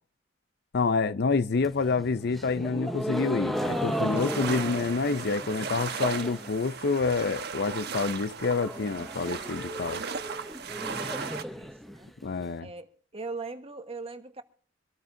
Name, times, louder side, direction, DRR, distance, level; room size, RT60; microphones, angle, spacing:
voice 1, 0.7-10.0 12.2-12.7, left 4 dB, 60° left, 0.6 m, -28 dB
sound 1, 1.5-6.6 6.8-7.4 7.7-7.8 8.0-8.1 8.4-12.4, equal, ahead, 0.8 m, -35 dB
sound 2, 3.6-11.4, right 5 dB, 55° right, 1.2 m, -36 dB
voice 2, 11.2-12.1 12.6-12.9 13.1-14.4, right 3 dB, 30° right, 1.4 m, -40 dB
25.0 x 13.5 x 2.7 m
head